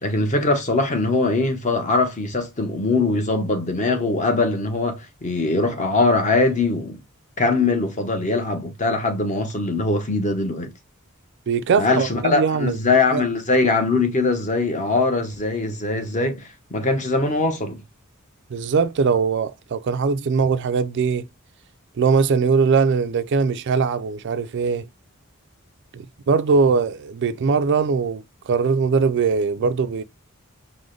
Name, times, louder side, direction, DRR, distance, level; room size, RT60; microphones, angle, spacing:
voice 1, 0.0-7.0 7.4-10.7 11.8-17.8, left 3 dB, 35° left, 0.9 m, -22 dB
voice 2, 11.5-12.8 13.1-13.2 18.5-21.3 22.0-24.9 25.9-30.0, right 5 dB, 55° right, 0.4 m, -21 dB
4.9 x 2.1 x 3.8 m
head